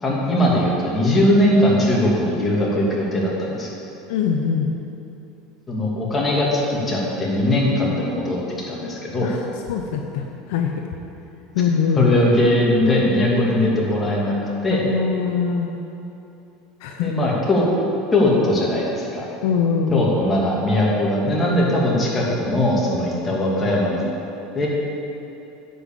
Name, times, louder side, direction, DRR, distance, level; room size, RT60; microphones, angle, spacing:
voice 1, 0.0-3.7 5.7-9.3 12.0-14.4 14.6-14.8 17.0-17.6 18.1-19.3 19.9-24.0 24.5-24.7, left 1 dB, 20° left, -4 dB, 2.6 m, -20 dB
voice 2, 4.1-4.7 9.2-10.9 11.5-12.1 14.7-15.7 16.8-17.1 19.4-20.0, left 6 dB, 75° left, 3 dB, 0.8 m, -23 dB
9.8 x 5.6 x 7.5 m, 2.8 s
supercardioid pair, 115°, 0 cm